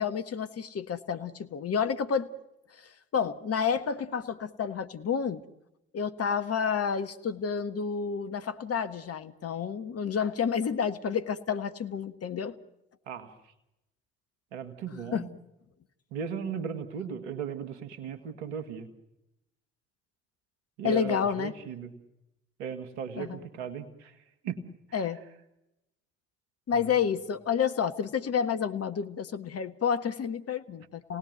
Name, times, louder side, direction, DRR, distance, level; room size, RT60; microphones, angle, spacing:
voice 1, 0.0-2.3 2.8-5.4 5.9-12.5 15.1-15.2 20.8-21.5 23.2-23.4 24.9-25.2 26.7-31.2, left 7 dB, 45° left, 10 dB, 1.6 m, -30 dB
voice 2, 14.5-15.3 16.1-18.9 20.8-21.9 22.6-24.2 24.4-25.1 26.7-26.9, right 7 dB, 80° right, 9 dB, 1.8 m, -37 dB
28.5 x 18.5 x 9.3 m, 0.92 s
hypercardioid pair, 45°, 32 cm